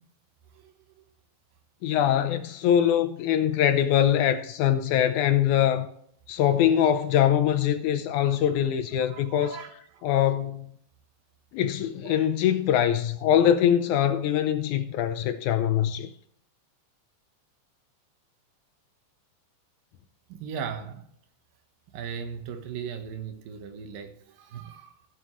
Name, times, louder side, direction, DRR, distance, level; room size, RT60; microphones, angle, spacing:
voice 1, 1.8-5.9 6.3-9.6 10.0-10.7 11.5-16.1, left 10 dB, 75° left, 1.9 m, -23 dB
voice 2, 9.0-9.7 12.0-12.2 20.3-21.0 21.9-24.9, right 7 dB, 85° right, 2.9 m, -37 dB
16.0 x 7.8 x 3.1 m
omnidirectional pair, 3.9 m